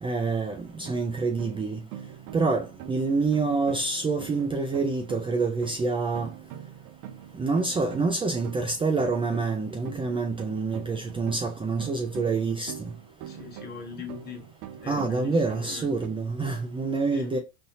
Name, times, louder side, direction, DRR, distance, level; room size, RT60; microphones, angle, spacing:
voice 1, 0.0-1.8 2.3-6.3 7.3-12.9 14.9-17.4, right 3 dB, 15° right, 0.5 m, -27 dB
sound 1, 0.6-16.1, right 10 dB, 65° right, 0.6 m, -44 dB
voice 2, 13.3-14.4 14.8-15.9 17.1-17.3, left 5 dB, 30° left, 1.2 m, -41 dB
4.0 x 2.7 x 2.6 m
supercardioid pair, 100°, 33 cm